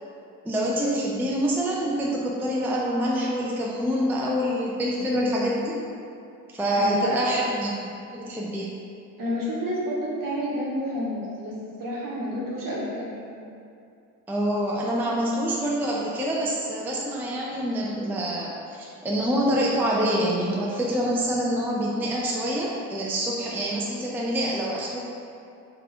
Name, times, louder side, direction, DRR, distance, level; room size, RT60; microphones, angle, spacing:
voice 1, 0.4-5.8 6.5-7.7 8.1-8.7 14.3-25.0, equal, 5° right, -4 dB, 0.4 m, -26 dB
voice 2, 4.9-5.2 6.7-7.4 9.2-13.5, equal, 50° right, -5 dB, 1.1 m, -30 dB
3.3 x 2.5 x 3.4 m, 2.6 s
hypercardioid pair, 50°, 42 cm